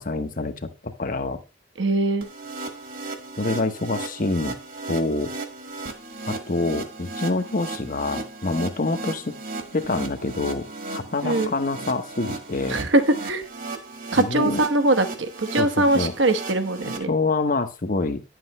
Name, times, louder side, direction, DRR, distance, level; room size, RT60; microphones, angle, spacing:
voice 1, 0.0-1.4 3.4-4.6 4.9-5.3 6.3-9.4 9.7-10.7 10.9-12.8 14.1-14.6 15.6-15.7 15.9-16.1 16.8-18.2, left 3 dB, 45° left, 8 dB, 1.0 m, -26 dB
voice 2, 1.8-2.3 11.2-11.5 12.7-13.4 14.1-17.1, right 2 dB, 65° right, 9 dB, 1.2 m, -22 dB
sound 1, 2.2-17.0, right 3 dB, 50° right, 1.6 m, -35 dB
10.5 x 7.8 x 3.1 m, 0.28 s
head